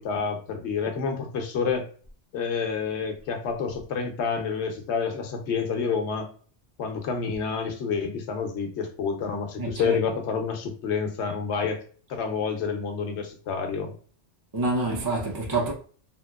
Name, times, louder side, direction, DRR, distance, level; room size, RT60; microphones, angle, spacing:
voice 1, 0.0-1.9 2.3-6.3 6.8-11.8 12.1-14.0, left 5 dB, 75° left, 1.0 m, -28 dB
voice 2, 9.6-10.0 14.5-15.7, right 2 dB, 25° right, 0.5 m, -27 dB
2.9 x 2.8 x 2.3 m
omnidirectional pair, 1.2 m